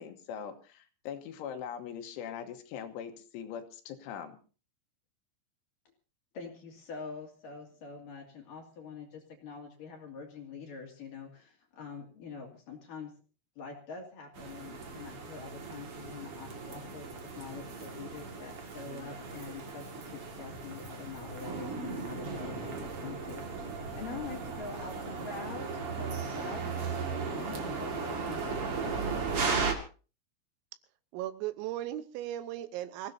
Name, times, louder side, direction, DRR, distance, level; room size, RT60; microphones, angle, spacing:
voice 1, 0.0-4.4, left 8 dB, 75° left, 7 dB, 3.4 m, -41 dB
voice 2, 6.3-13.1 13.6-23.5 24.0-29.0, left 5 dB, 55° left, 2 dB, 3.0 m, -45 dB
sound 1, 14.3-29.7, right 4 dB, 60° right, 1.4 m, -36 dB
voice 3, 31.1-33.1, right 13 dB, 85° right, 12 dB, 3.6 m, -37 dB
27.0 x 16.0 x 2.7 m, 0.36 s
omnidirectional pair, 6.0 m